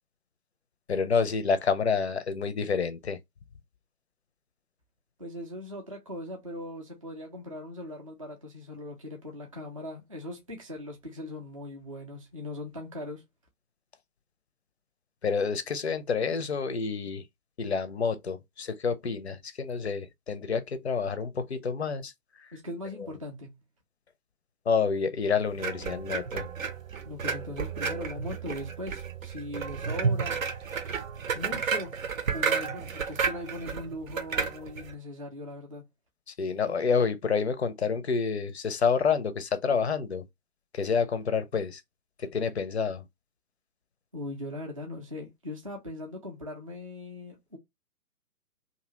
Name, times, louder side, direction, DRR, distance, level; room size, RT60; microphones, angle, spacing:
voice 1, 0.9-3.2 15.2-17.2 17.6-22.1 23.0-23.1 24.7-26.5 36.4-40.2 40.7-41.8 42.2-43.0, left 5 dB, 45° left, 0.5 m, -28 dB
voice 2, 5.2-13.2 22.5-23.5 27.0-30.4 31.3-31.9 32.3-35.8 44.1-47.6, left 1 dB, 25° right, 0.5 m, -39 dB
sound 1, 25.6-34.9, right 5 dB, 60° right, 0.7 m, -32 dB
2.7 x 2.6 x 2.8 m
figure-of-eight pair, 140°, 46 cm